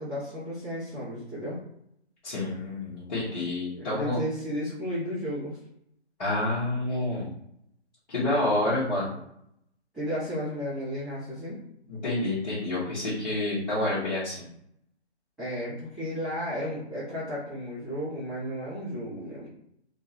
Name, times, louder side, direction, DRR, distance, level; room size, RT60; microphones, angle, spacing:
voice 1, 0.0-1.6 3.8-5.6 9.9-11.6 15.4-19.5, equal, ahead, -18 dB, 0.6 m, -33 dB
voice 2, 2.2-4.2 6.2-7.3 8.1-9.2 11.9-14.4, left 2 dB, 35° left, -11 dB, 1.1 m, -28 dB
3.6 x 2.1 x 2.8 m, 0.74 s
figure-of-eight pair, 145°, 34 cm